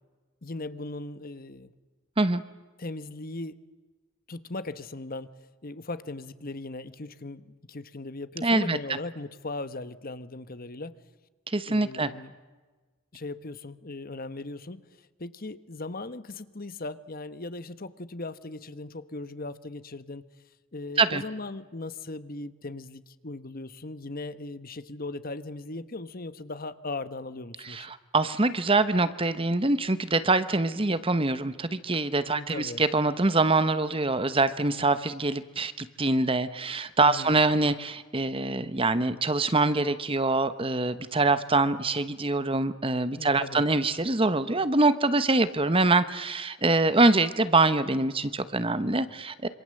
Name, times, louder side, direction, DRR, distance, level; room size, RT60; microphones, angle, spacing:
voice 1, 0.4-1.7 2.8-3.6 4.3-5.3 5.6-11.0 11.7-12.3 13.1-14.8 15.2-20.3 20.7-27.9 32.3-32.8 37.0-37.4 43.2-43.6, left 2 dB, 45° left, 13 dB, 1.1 m, -38 dB
voice 2, 8.4-8.8 11.5-12.1 21.0-21.2 27.6-49.5, right 2 dB, 25° right, 13 dB, 1.1 m, -24 dB
27.0 x 26.0 x 7.7 m, 1.3 s
head